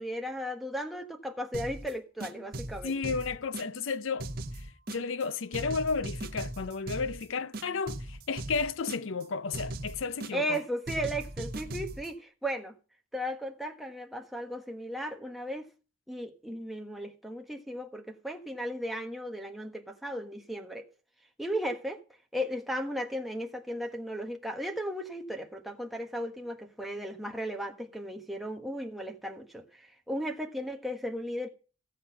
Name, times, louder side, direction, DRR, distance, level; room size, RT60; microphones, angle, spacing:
voice 1, 0.0-3.1 10.3-12.8 13.1-15.7 16.1-20.9 21.4-22.0 22.3-31.5, equal, ahead, 1.3 m, -36 dB
sound 1, 1.5-1.9 2.2-3.9 4.2-5.2 5.5-7.2 7.5-9.2 9.5-10.6 10.9-12.1, right 1 dB, 45° right, 1.3 m, -39 dB
voice 2, 2.8-10.6, left 4 dB, 65° left, 0.6 m, -33 dB
16.0 x 7.6 x 5.8 m
head